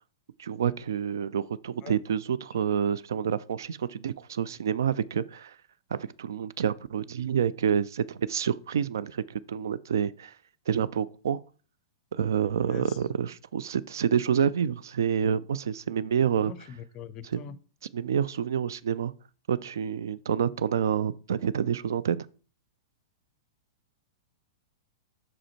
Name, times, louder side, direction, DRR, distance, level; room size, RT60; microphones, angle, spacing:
voice 1, 0.4-5.6 5.9-10.4 10.7-11.4 12.1-16.5 17.2-17.4 17.9-19.1 19.5-22.2, right 8 dB, 60° right, 0.3 m, -28 dB
voice 2, 16.4-17.6, left 9 dB, 30° left, 0.5 m, -43 dB
5.7 x 4.9 x 4.2 m
figure-of-eight pair, 100°, 2 cm